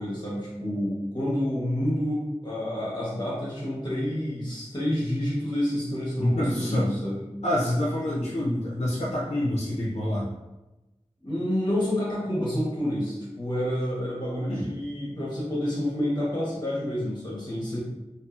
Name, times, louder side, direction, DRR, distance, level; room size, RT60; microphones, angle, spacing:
voice 1, 0.0-7.2 11.2-17.8, left 1 dB, 40° left, -7 dB, 0.9 m, -29 dB
voice 2, 6.2-6.9 7.4-10.3 14.5-14.6, left 1 dB, 65° left, -6 dB, 0.6 m, -26 dB
2.6 x 2.5 x 2.4 m, 1.0 s
wide cardioid pair, 40°, 12 cm